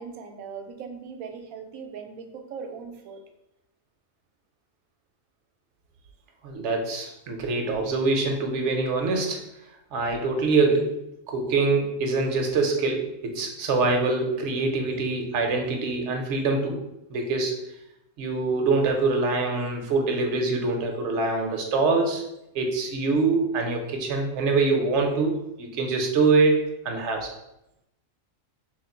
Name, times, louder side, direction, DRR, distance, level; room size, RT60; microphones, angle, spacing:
voice 1, 0.0-3.2, right 6 dB, 90° right, 5 dB, 1.0 m, -39 dB
voice 2, 6.4-9.4 9.9-11.0 11.3-16.8 17.1-17.5 18.2-22.2 22.5-27.3, right 3 dB, 65° right, 3 dB, 0.9 m, -24 dB
3.1 x 2.3 x 4.3 m, 0.86 s
omnidirectional pair, 1.4 m